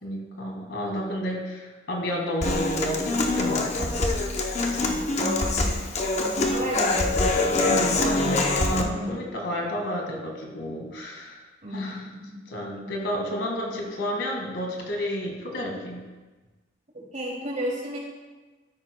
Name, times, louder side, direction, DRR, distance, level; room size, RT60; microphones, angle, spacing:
voice 1, 0.0-4.2 6.2-6.6 7.5-11.4 11.7-12.1 12.5-16.0, equal, 70° left, 0 dB, 1.8 m, -31 dB
Human voice / Acoustic guitar, 2.4-8.8, left 2 dB, 35° left, 0.7 m, -24 dB
voice 2, 4.7-5.8 6.5-7.2 8.8-9.1 11.6-12.9 13.7-13.8 16.9-18.0, equal, 40° right, -3 dB, 2.6 m, -33 dB
13.0 x 9.8 x 2.2 m, 1.2 s
head